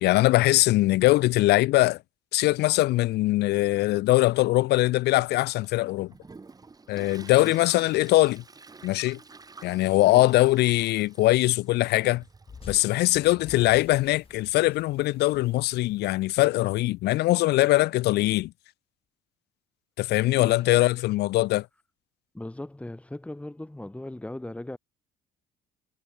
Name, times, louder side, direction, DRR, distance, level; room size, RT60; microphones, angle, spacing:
voice 1, 0.0-2.0 2.3-6.1 6.9-8.4 8.8-9.2 9.6-12.2 12.7-18.5 20.0-21.7, left 18 dB, 75° left, 0.7 m, -22 dB
Toilet flush, 5.6-15.9, right 4 dB, 20° right, 6.0 m, -51 dB
sound 1, 12.5-16.9, left 6 dB, 35° left, 6.1 m, -48 dB
voice 2, 20.3-20.8 22.3-24.8, left 1 dB, 5° left, 3.4 m, -38 dB
cardioid pair, 110°, 17 cm